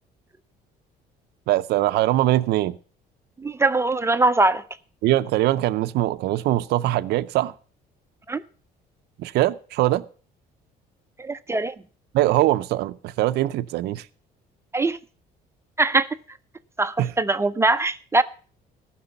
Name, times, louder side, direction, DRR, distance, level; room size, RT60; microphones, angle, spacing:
voice 1, 1.5-2.8 5.0-7.5 9.2-10.0 12.1-14.1 17.0-17.1, right 15 dB, 75° right, 0.5 m, -22 dB
voice 2, 3.4-4.6 8.3-8.4 11.2-11.7 14.7-15.0 15.8-16.1 16.8-18.2, right 2 dB, 15° right, 0.5 m, -21 dB
14.5 x 6.1 x 7.0 m
cardioid pair, 110°, 17 cm